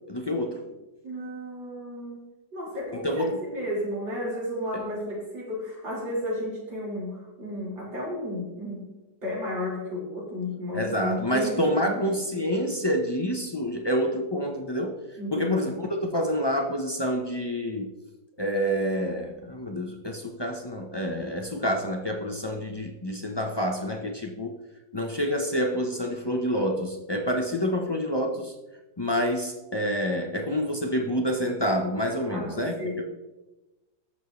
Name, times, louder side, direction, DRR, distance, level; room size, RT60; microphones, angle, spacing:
voice 1, 0.1-0.6 2.9-3.4 10.7-15.0 15.3-17.9 18.4-24.6 24.9-28.5 29.0-33.0, equal, 40° left, 2 dB, 0.3 m, -28 dB
voice 2, 1.0-2.3 2.5-8.9 9.2-12.0 15.2-15.7 32.3-33.1, left 1 dB, 85° right, -6 dB, 5.1 m, -33 dB
19.0 x 7.3 x 3.1 m, 1.1 s
omnidirectional pair, 2.0 m